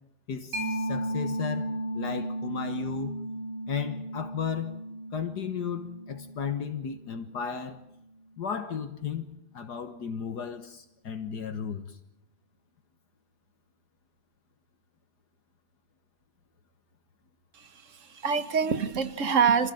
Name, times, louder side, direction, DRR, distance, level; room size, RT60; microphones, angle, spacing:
voice 1, 0.3-3.2 3.7-4.8 5.1-7.8 8.4-12.0, left 7 dB, 70° left, 1.9 m, -34 dB
Mallet percussion, 0.5-7.8, right 1 dB, 70° right, 4.1 m, -35 dB
voice 2, 17.5-19.7, right 6 dB, 50° right, 1.5 m, -26 dB
26.0 x 16.0 x 9.2 m
omnidirectional pair, 1.9 m